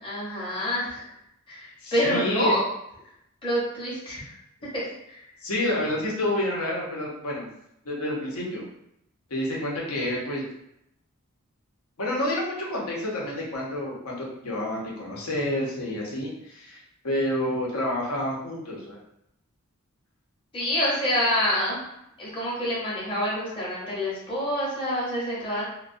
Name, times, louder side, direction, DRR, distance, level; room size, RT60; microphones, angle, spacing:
voice 1, 0.0-1.0 1.5-2.6 3.4-4.2 4.7-5.2 20.5-21.8 22.2-25.7, equal, 25° left, -7 dB, 0.8 m, -27 dB
voice 2, 1.8-2.6 5.4-7.5 7.8-8.6 9.3-10.4 12.0-16.8 17.0-19.0, left 1 dB, 80° left, -3 dB, 0.8 m, -29 dB
2.3 x 2.2 x 2.5 m, 0.79 s
head